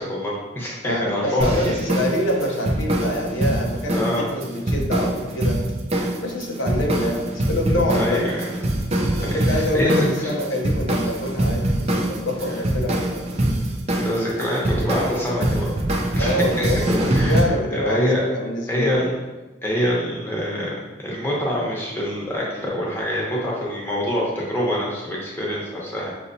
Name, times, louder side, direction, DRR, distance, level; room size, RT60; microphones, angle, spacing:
voice 1, 0.0-1.7 3.9-4.3 7.9-8.5 9.2-10.3 14.0-18.2 18.7-19.1 19.6-26.1, equal, 10° left, -5 dB, 0.8 m, -25 dB
voice 2, 0.8-5.6 6.2-8.2 9.2-13.3 16.2-19.0, left 1 dB, 85° left, 0 dB, 0.7 m, -26 dB
sound 1, 1.4-17.4, right 1 dB, 35° right, 0.5 m, -24 dB
6.4 x 2.9 x 2.6 m, 1.1 s
head